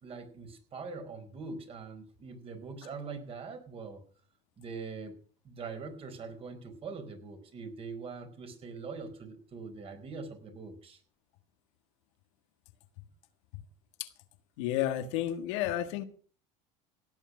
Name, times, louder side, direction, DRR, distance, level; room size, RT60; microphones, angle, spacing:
voice 1, 0.0-4.0 4.6-5.2 5.4-11.0, right 4 dB, 40° right, 7 dB, 4.5 m, -43 dB
voice 2, 14.6-16.0, left 12 dB, 80° left, 9 dB, 1.6 m, -31 dB
17.0 x 9.1 x 6.2 m, 0.43 s
supercardioid pair, 100°, 15 cm